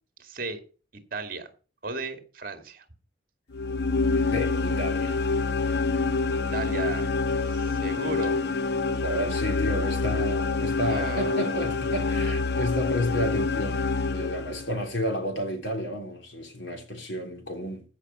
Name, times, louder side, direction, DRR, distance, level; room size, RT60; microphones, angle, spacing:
voice 1, 0.2-0.6 1.1-1.5 1.8-2.9 6.5-8.4 10.9-11.8, right 3 dB, 50° right, 2.1 m, -35 dB
sound 1, 3.5-14.8, left 4 dB, 55° left, 0.6 m, -27 dB
voice 2, 4.3-5.2 9.0-13.9 14.1-17.8, equal, 75° left, 3.4 m, -31 dB
15.0 x 5.8 x 5.4 m
head